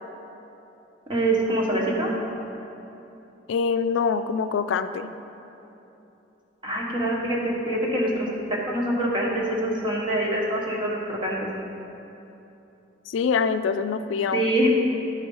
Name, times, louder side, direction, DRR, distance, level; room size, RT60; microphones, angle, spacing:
voice 1, 1.1-2.1 6.6-11.4 14.3-14.7, right 1 dB, 25° right, -3 dB, 1.2 m, -25 dB
voice 2, 3.5-5.1 13.1-14.5, left 5 dB, 90° left, 11 dB, 0.3 m, -25 dB
11.0 x 4.3 x 5.4 m, 3.0 s
head